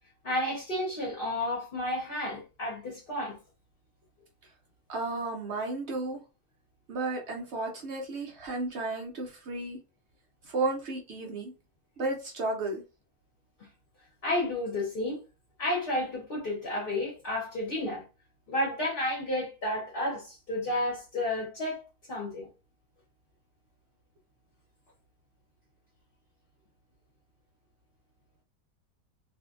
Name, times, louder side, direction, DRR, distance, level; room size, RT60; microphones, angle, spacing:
voice 1, 0.2-3.4 14.2-15.2 15.6-18.0 18.5-22.5, left 1 dB, 40° left, 0.9 m, -31 dB
voice 2, 4.9-6.2 6.9-9.8 10.5-11.5 12.0-12.8, right 2 dB, 65° right, 0.6 m, -33 dB
2.6 x 2.4 x 2.4 m
omnidirectional pair, 1.7 m